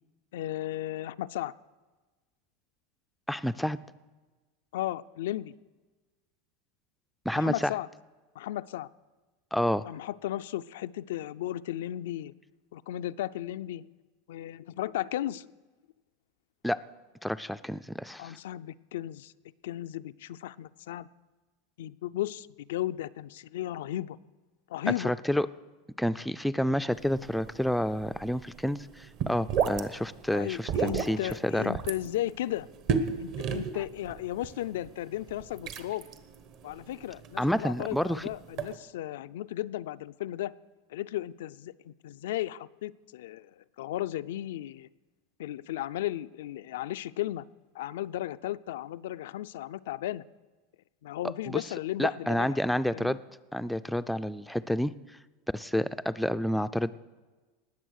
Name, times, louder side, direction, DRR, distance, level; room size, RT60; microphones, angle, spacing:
voice 1, 0.3-1.5 4.7-5.5 7.4-7.9 8.4-8.9 9.9-12.3 12.7-13.9 14.3-15.5 18.2-19.3 19.6-21.1 21.8-24.2 24.7-25.1 30.3-32.7 33.2-36.0 36.6-40.5 40.9-44.9 45.4-47.4 47.7-50.2 51.0-52.5 52.9-53.2, left 14 dB, 80° left, 13 dB, 0.3 m, -35 dB
voice 2, 3.3-3.8 7.3-7.7 9.5-9.9 16.6-16.8 17.2-18.4 25.0-25.5 26.0-31.8 37.4-38.2 51.5-51.6 52.0-53.2 53.5-54.9 55.5-56.9, equal, ahead, 11 dB, 0.3 m, -29 dB
sound 1, 26.9-38.8, right 6 dB, 50° right, 1.1 m, -35 dB
19.5 x 7.2 x 6.4 m, 1.3 s
supercardioid pair, 135°, 0 cm